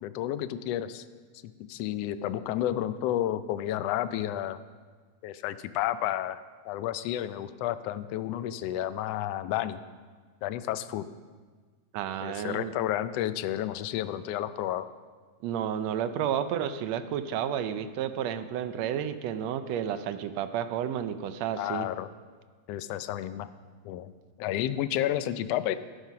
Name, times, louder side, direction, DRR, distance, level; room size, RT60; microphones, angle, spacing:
voice 1, 0.0-1.0 1.7-4.6 5.2-6.4 6.6-9.8 10.4-11.1 12.2-14.8 21.6-22.1 22.7-23.5 23.8-24.1 24.4-25.8, left 12 dB, 80° left, 12 dB, 1.5 m, -31 dB
voice 2, 11.9-12.7 15.4-21.9, right 9 dB, 75° right, 10 dB, 1.7 m, -31 dB
13.5 x 9.2 x 5.7 m, 1.5 s
omnidirectional pair, 3.4 m